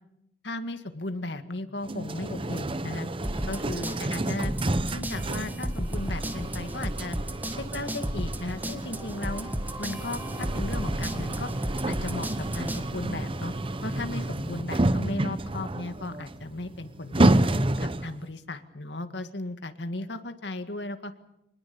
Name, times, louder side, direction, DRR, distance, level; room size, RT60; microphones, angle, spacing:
voice 1, 0.4-3.1 3.5-4.5 4.9-7.2 7.6-9.5 9.8-11.5 11.9-13.5 13.8-17.4 17.8-21.1, left 2 dB, 75° left, 8 dB, 1.9 m, -36 dB
sound 1, 1.8-18.2, right 1 dB, 30° right, 0.9 m, -30 dB
sound 2, 3.2-12.8, equal, 10° right, 1.7 m, -34 dB
26.0 x 20.0 x 7.0 m, 0.83 s
head